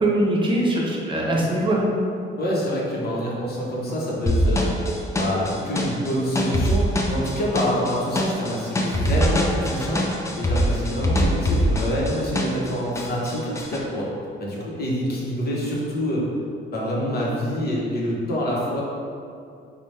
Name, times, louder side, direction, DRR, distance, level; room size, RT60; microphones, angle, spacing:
voice 1, 0.0-1.9 10.3-10.4, right 1 dB, 25° right, -3 dB, 0.7 m, -22 dB
voice 2, 2.4-4.7 5.2-14.1 14.4-16.3 16.7-18.8, equal, 50° left, -4 dB, 0.9 m, -26 dB
sound 1, 4.3-12.7 12.9-13.8, equal, 15° left, 0.4 m, -23 dB
4.0 x 2.3 x 3.2 m, 2.5 s
cardioid pair, 90°, 20 cm